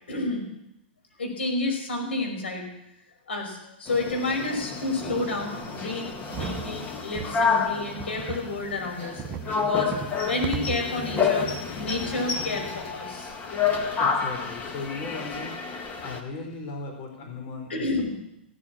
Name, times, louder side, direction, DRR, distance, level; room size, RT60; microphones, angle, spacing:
voice 1, 0.1-0.5 1.2-2.7 3.3-9.2 9.5-9.9 10.2-11.5 11.8-13.3 17.7-18.1, left 2 dB, 85° left, 2 dB, 5.4 m, -30 dB
sound 1, 3.9-16.2, left 5 dB, 25° left, 2.0 m, -29 dB
sound 2, 6.3-6.7 7.2-7.3 8.0-8.5 9.2-9.5 9.9-10.2 10.4-10.9, right 8 dB, 30° right, 1.2 m, -34 dB
voice 2, 14.0-15.6 16.0-17.9, left 3 dB, 45° left, 2 dB, 4.0 m, -37 dB
16.0 x 8.6 x 8.7 m, 0.84 s
hypercardioid pair, 120°, 6 cm